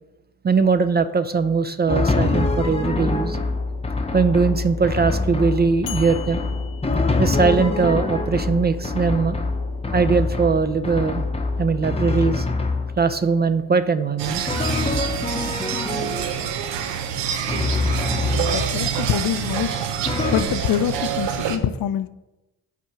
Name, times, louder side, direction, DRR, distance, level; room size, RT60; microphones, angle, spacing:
voice 1, 0.4-3.4 4.1-6.4 7.2-9.4 9.9-11.3 11.6-12.5 13.0-14.4, right 5 dB, 25° right, 0.4 m, -20 dB
Drum, 1.9-13.2 14.5-16.4 17.5-19.0 20.1-20.4, left 3 dB, 15° left, 0.7 m, -25 dB
sound 1, 5.9-7.9, left 10 dB, 85° left, 0.9 m, -40 dB
sound 2, 14.2-21.6, right 8 dB, 85° right, 0.7 m, -26 dB
voice 2, 18.5-19.8 20.3-22.1, left 10 dB, 55° left, 0.5 m, -24 dB
5.9 x 4.4 x 6.0 m
supercardioid pair, 60°, 41 cm